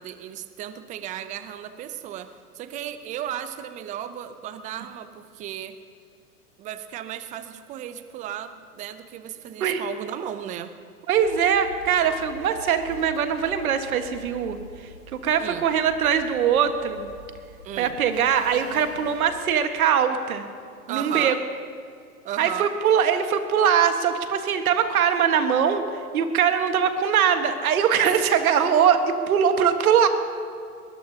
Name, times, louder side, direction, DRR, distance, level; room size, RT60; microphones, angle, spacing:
voice 1, 0.0-5.8 6.6-10.7 15.4-15.7 17.6-18.0 20.9-21.4 22.2-22.7, right 10 dB, 15° right, 12 dB, 0.5 m, -35 dB
sound 1, 11.1-19.5, left 2 dB, 90° left, 2.7 m, -44 dB
voice 2, 11.1-14.6 15.2-17.1 17.8-20.4 20.9-21.4 22.4-30.1, right 8 dB, 65° right, 8 dB, 1.6 m, -22 dB
22.0 x 20.0 x 2.8 m, 2.4 s
hypercardioid pair, 115°, 46 cm